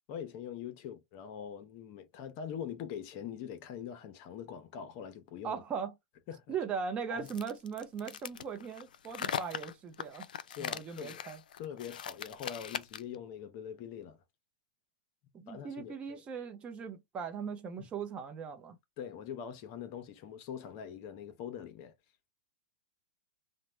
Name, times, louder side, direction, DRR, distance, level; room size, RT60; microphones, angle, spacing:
voice 1, 0.1-5.6 6.3-6.4 7.1-7.3 10.5-11.2 11.5-14.2 15.5-16.2 17.8-17.9 19.0-21.9, left 8 dB, 45° left, 0.6 m, -43 dB
voice 2, 5.4-5.9 6.5-10.3 10.6-11.4 15.3-18.8, right 6 dB, 25° right, 0.6 m, -39 dB
sound 1, 7.2-13.2, left 8 dB, 80° left, 0.3 m, -40 dB
2.9 x 2.1 x 3.2 m
hypercardioid pair, 120°, 5 cm